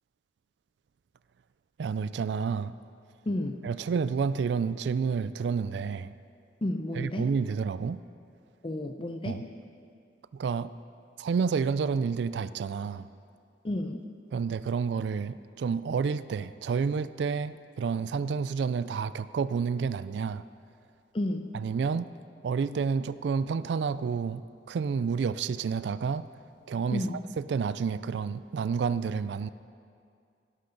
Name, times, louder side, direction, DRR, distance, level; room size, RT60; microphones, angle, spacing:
voice 1, 1.8-2.7 3.6-6.1 6.9-8.0 9.2-9.4 10.3-10.7 11.2-13.1 14.3-20.4 21.5-22.1 22.4-26.2 26.7-29.5, right 5 dB, 80° right, 15 dB, 0.3 m, -30 dB
voice 2, 3.3-3.6 6.6-7.3 8.6-9.5 13.6-14.1 21.1-21.5 26.9-27.2, left 1 dB, 30° left, 6 dB, 0.6 m, -31 dB
17.5 x 11.5 x 3.9 m, 2.3 s
head